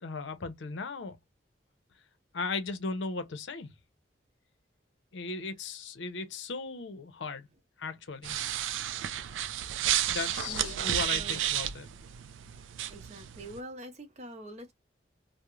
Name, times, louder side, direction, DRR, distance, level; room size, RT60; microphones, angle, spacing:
voice 1, 0.0-1.2 2.3-3.7 5.1-7.5 7.8-8.4 10.1-11.9, left 4 dB, 75° left, 0.6 m, -37 dB
sound 1, 8.2-13.6, right 11 dB, 85° right, 0.3 m, -32 dB
voice 2, 10.5-11.5 12.9-14.7, right 1 dB, 35° right, 0.6 m, -45 dB
2.3 x 2.0 x 3.0 m
head